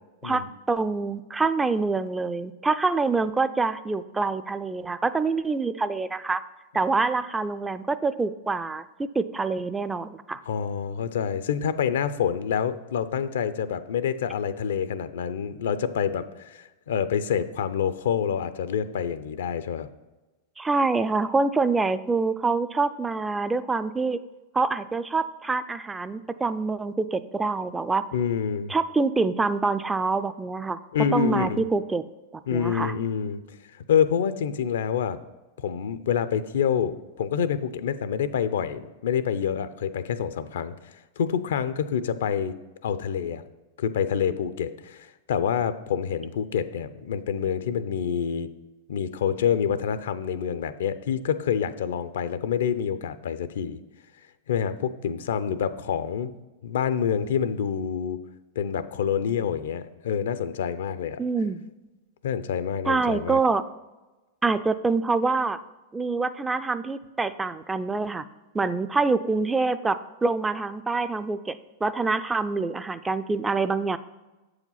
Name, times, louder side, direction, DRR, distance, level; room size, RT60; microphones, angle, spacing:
voice 1, 0.2-6.4 6.7-10.4 20.6-24.2 24.5-28.0 28.7-30.8 31.1-32.0 32.5-32.9 61.2-61.7 62.9-63.6 64.4-65.6 65.9-68.2 68.5-74.0, right 4 dB, 10° right, 12 dB, 0.3 m, -26 dB
voice 2, 10.5-19.9 28.1-28.7 30.9-31.6 32.5-33.4 33.9-35.2 35.6-40.7 41.2-42.5 42.8-43.4 43.8-48.5 48.9-53.8 54.5-56.3 56.6-58.2 58.6-61.2 62.2-63.4, left 8 dB, 75° left, 13 dB, 0.5 m, -27 dB
7.5 x 4.9 x 5.6 m, 1.1 s
hypercardioid pair, 120°, 0 cm